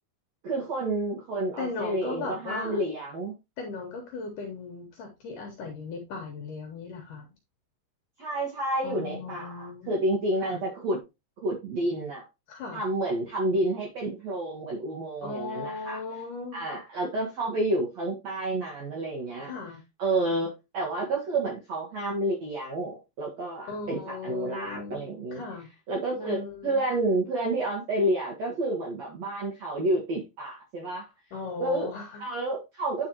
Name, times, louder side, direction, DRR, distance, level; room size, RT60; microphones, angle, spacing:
voice 1, 0.4-3.3 8.2-11.0 11.4-12.2 12.7-16.0 16.5-19.5 20.0-25.4 25.9-31.1 31.6-31.9 32.2-33.1, right 1 dB, 60° right, 1.9 m, -29 dB
voice 2, 1.6-2.8 3.6-7.3 8.8-9.9 10.4-10.6 12.5-12.8 15.2-16.6 19.4-19.8 23.7-25.0 25.3-25.7 26.1-26.8 31.3-32.2, left 4 dB, 65° left, 2.2 m, -37 dB
10.0 x 4.7 x 2.9 m
omnidirectional pair, 5.1 m